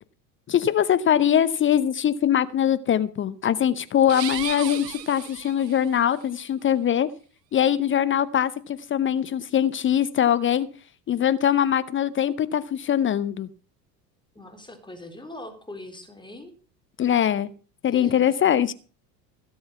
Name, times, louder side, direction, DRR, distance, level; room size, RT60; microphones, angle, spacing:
voice 1, 0.5-7.1 7.5-10.7 11.1-13.5 17.0-17.5 17.8-18.7, left 9 dB, 25° left, 15 dB, 0.7 m, -22 dB
sound 1, 4.0-6.0, right 11 dB, 75° right, 0.8 m, -35 dB
voice 2, 14.4-16.5 17.9-18.7, left 1 dB, 10° left, 4 dB, 3.5 m, -42 dB
17.0 x 7.9 x 5.7 m, 0.39 s
figure-of-eight pair, 70°, 50 cm